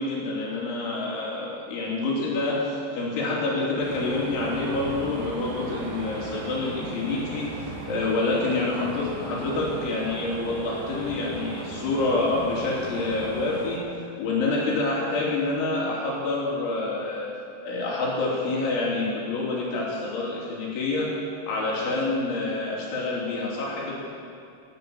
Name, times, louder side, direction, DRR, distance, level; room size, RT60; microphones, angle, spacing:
voice 1, 0.0-13.8 14.2-17.3 17.6-21.1 21.5-24.0, left 2 dB, 75° left, -4 dB, 5.5 m, -27 dB
sound 1, 3.8-13.8, right 3 dB, 75° right, 4.5 m, -37 dB
13.5 x 12.5 x 8.6 m, 2.4 s
omnidirectional pair, 5.5 m